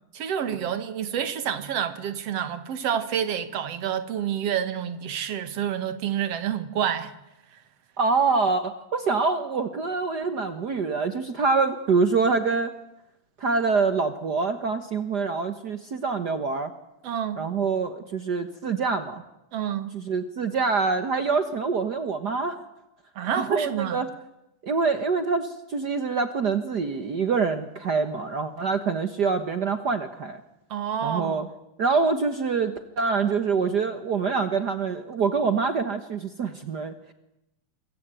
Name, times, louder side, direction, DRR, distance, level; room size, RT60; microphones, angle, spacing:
voice 1, 0.1-7.1 17.0-17.4 19.5-19.9 23.2-24.0 30.7-31.5, right 9 dB, 55° right, 2.3 m, -28 dB
voice 2, 8.0-12.7 13.4-16.7 17.4-19.2 19.9-22.6 23.2-24.1 24.6-30.4 31.0-31.5 31.8-37.1, right 4 dB, 85° right, 0.9 m, -25 dB
27.5 x 24.0 x 9.1 m
omnidirectional pair, 4.0 m